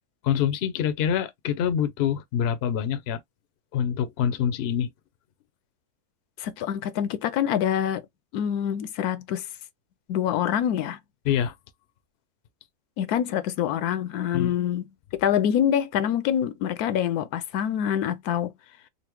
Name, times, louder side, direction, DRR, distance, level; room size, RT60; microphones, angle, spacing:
voice 1, 0.2-3.2 3.7-4.9 11.2-11.5 14.3-14.5, left 9 dB, 60° left, 0.6 m, -25 dB
voice 2, 6.4-8.0 8.3-9.5 10.1-11.0 13.0-14.8 15.1-18.5, left 9 dB, 85° left, 1.1 m, -25 dB
4.0 x 2.0 x 3.0 m
omnidirectional pair, 1.6 m